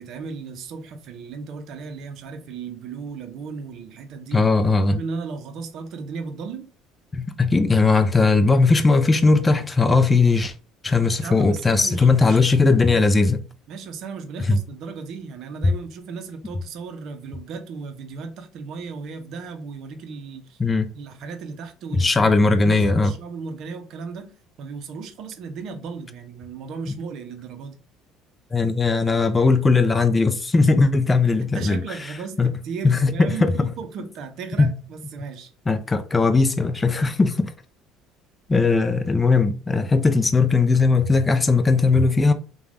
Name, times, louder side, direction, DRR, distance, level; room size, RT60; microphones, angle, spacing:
voice 1, 0.0-4.4 5.0-6.7 11.2-13.1 13.7-20.6 20.9-24.3 24.6-27.8 31.4-35.5, right 5 dB, 60° right, 0.6 m, -35 dB
voice 2, 4.3-5.0 7.1-10.5 10.8-13.4 14.5-14.6 20.6-20.9 21.9-23.1 28.5-31.8 32.4-32.5 32.8-33.7 34.6-34.7 35.7-37.5 38.5-42.3, left 3 dB, 20° left, 0.4 m, -18 dB
3.1 x 2.3 x 2.5 m
supercardioid pair, 95°, 0 cm